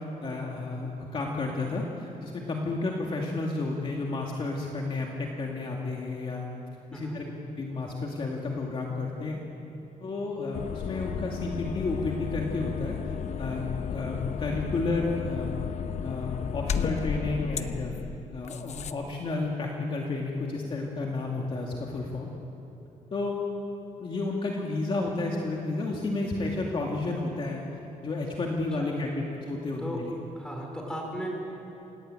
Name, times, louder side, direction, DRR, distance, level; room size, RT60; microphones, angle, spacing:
voice 1, 0.0-6.4 6.9-7.2 7.6-9.4 10.0-15.5 16.0-17.9 18.3-22.3 23.1-23.4 24.0-27.6 28.0-30.1, left 3 dB, 35° left, -1 dB, 2.3 m, -31 dB
sound 1, 10.5-18.9, left 7 dB, 55° left, 0.9 m, -33 dB
voice 2, 30.3-31.3, equal, 5° left, 0 dB, 4.8 m, -36 dB
28.0 x 18.0 x 8.9 m, 2.9 s
wide cardioid pair, 165°, 14 cm